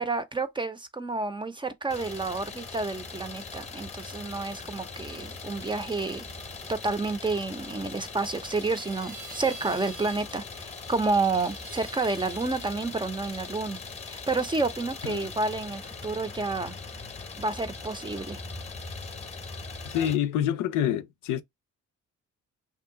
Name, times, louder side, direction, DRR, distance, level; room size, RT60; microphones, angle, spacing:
voice 1, 0.0-6.3 6.7-13.8 14.1-16.7 17.4-18.4, right 3 dB, 15° right, 0.5 m, -30 dB
Idling, 1.9-20.2, left 4 dB, 20° left, 0.7 m, -41 dB
sound 1, 5.5-7.7 8.3-10.4 10.7-12.7, right 4 dB, 80° right, 1.1 m, -48 dB
voice 2, 19.8-21.4, left 10 dB, 85° left, 0.5 m, -27 dB
2.7 x 2.2 x 3.6 m
cardioid pair, 90°, 30 cm